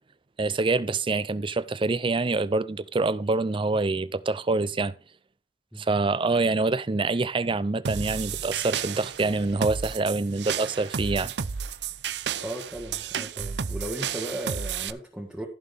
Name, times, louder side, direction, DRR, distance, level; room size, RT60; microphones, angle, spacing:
voice 1, 0.4-4.9 5.8-11.3, right 3 dB, 30° right, 0.5 m, -26 dB
sound 1, 7.9-14.9, right 7 dB, 75° right, 0.6 m, -32 dB
voice 2, 12.4-15.5, right 1 dB, 5° right, 1.8 m, -36 dB
15.0 x 6.3 x 3.5 m
head